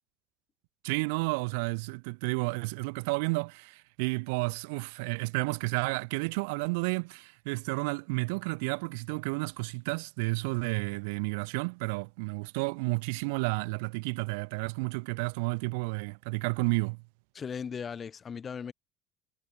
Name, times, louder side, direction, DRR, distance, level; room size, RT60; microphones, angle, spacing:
voice 1, 0.8-17.0, right 30 dB, 90° right, 1.0 m, -31 dB
voice 2, 17.3-18.7, left 6 dB, 25° left, 5.5 m, -37 dB
cardioid pair, 140°, 0 cm